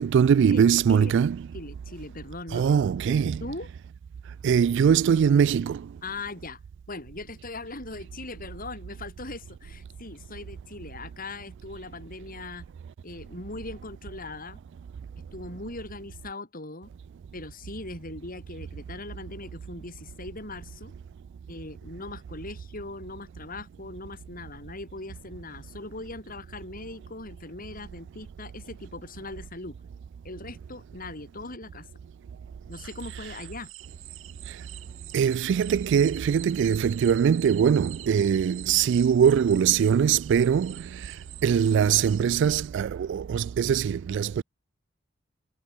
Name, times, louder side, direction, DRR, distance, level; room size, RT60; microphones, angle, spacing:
voice 1, 0.0-1.4 2.5-3.4 4.4-5.8 35.1-40.7 41.4-44.4, right 7 dB, 60° right, 0.3 m, -22 dB
voice 2, 1.5-3.7 6.0-6.6 6.9-12.7 13.0-14.6 15.3-16.9 17.3-20.9 21.5-29.8 30.2-31.9 32.7-33.7, left 2 dB, 45° left, 6.3 m, -40 dB
sound 1, 32.7-42.7, right 14 dB, 80° right, 7.6 m, -46 dB
head